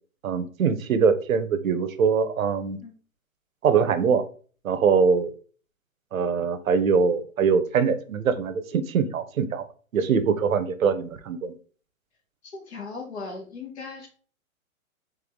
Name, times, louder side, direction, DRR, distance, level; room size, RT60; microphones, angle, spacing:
voice 1, 0.2-2.8 3.6-4.2 4.6-5.3 6.1-9.6 9.9-11.5, right 6 dB, 70° right, 10 dB, 0.8 m, -23 dB
voice 2, 12.5-14.1, left 4 dB, 50° left, 2 dB, 1.5 m, -37 dB
3.6 x 3.4 x 3.5 m, 0.41 s
hypercardioid pair, 180°, 42 cm